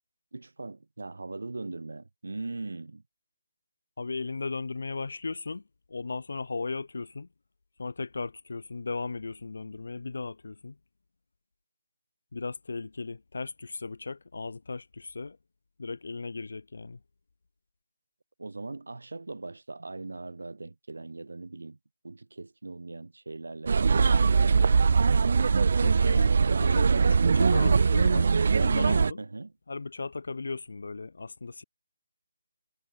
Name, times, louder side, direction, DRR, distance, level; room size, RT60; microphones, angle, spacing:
voice 1, 0.3-3.0 18.4-21.8 22.0-24.8 25.0-25.6 29.2-29.5, right 3 dB, 85° right, 2.8 m, -40 dB
voice 2, 4.0-7.3 7.8-10.8 12.3-15.4 15.8-17.0 25.8-26.3 26.6-29.2 29.7-31.6, left 4 dB, 65° left, 1.8 m, -36 dB
sound 1, 23.7-29.1, right 5 dB, 50° right, 0.4 m, -22 dB
hypercardioid pair, 170°, 0 cm